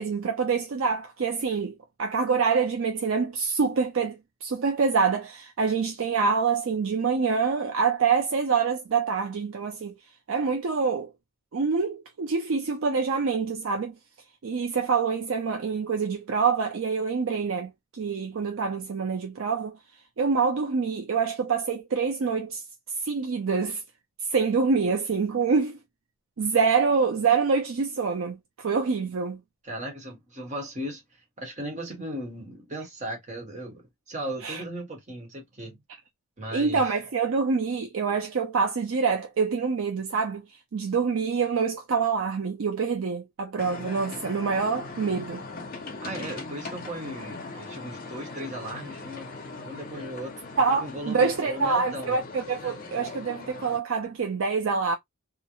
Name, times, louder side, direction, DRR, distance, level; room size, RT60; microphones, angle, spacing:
voice 1, 0.0-9.9 10.3-11.1 11.5-14.0 14.4-19.8 20.2-22.6 23.0-23.8 24.3-25.8 26.4-29.4 34.4-34.6 36.5-40.4 40.7-45.4 50.6-54.9, right 5 dB, 60° right, 0.4 m, -26 dB
voice 2, 29.6-35.8 36.4-36.8 46.0-49.3 49.6-50.3 50.7-52.2, right 1 dB, 30° right, 1.0 m, -37 dB
sound 1, 43.6-53.8, left 3 dB, 40° left, 0.6 m, -40 dB
2.4 x 2.0 x 2.8 m
head